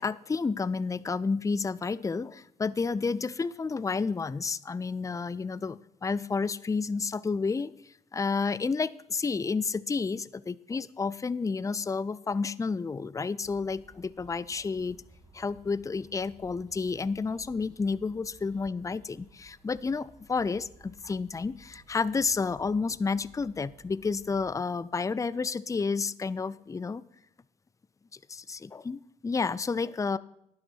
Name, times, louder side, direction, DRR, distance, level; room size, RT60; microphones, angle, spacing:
voice 1, 0.0-15.0 15.3-27.0 28.3-30.2, left 4 dB, 20° left, 18 dB, 0.5 m, -31 dB
sound 1, 13.4-24.5, right 3 dB, 25° right, 3.3 m, -57 dB
11.5 x 9.5 x 4.6 m, 0.75 s
hypercardioid pair, 55°, 18 cm